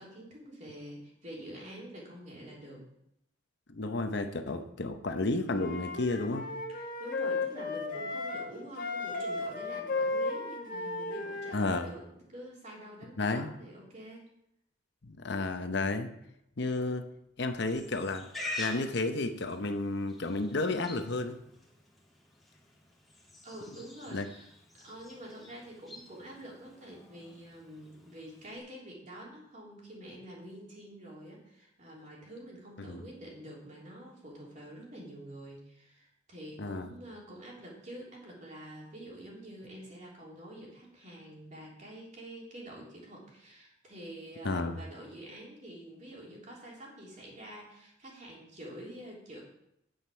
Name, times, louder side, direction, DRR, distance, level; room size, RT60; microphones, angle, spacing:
voice 1, 0.0-2.8 6.7-14.3 23.4-24.5 24.8-49.4, right 1 dB, 40° right, -4 dB, 3.4 m, -47 dB
voice 2, 3.7-6.5 11.5-11.9 13.2-13.5 15.0-16.1 16.6-17.1 17.4-18.3 18.6-21.4 24.1-24.3 32.9-33.1 36.6-36.9 44.4-44.8, left 2 dB, 60° left, 7 dB, 0.8 m, -32 dB
Wind instrument woodwind instrument, 5.5-8.5 8.7-11.9, left 3 dB, 45° left, 1.6 m, -35 dB
Livestock farm animals working animals, 17.7-28.6, left 2 dB, ahead, 2.6 m, -47 dB
9.3 x 8.2 x 5.6 m, 0.79 s
head